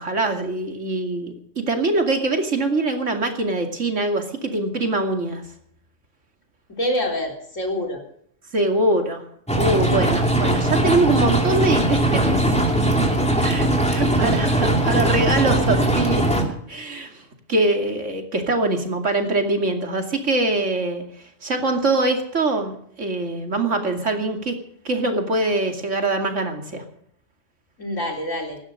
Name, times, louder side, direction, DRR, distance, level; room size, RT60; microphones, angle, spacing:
voice 1, 0.0-5.4 8.5-9.2 9.5-12.2 13.4-17.2 17.5-21.0 21.4-24.5 24.8-26.8, right 2 dB, 75° right, 4 dB, 2.9 m, -23 dB
voice 2, 6.7-8.0 27.8-28.6, left 1 dB, 80° left, 2 dB, 4.1 m, -26 dB
sound 1, 9.5-16.4, right 1 dB, 5° left, 2.5 m, -20 dB
17.0 x 12.5 x 6.6 m, 0.66 s
omnidirectional pair, 1.3 m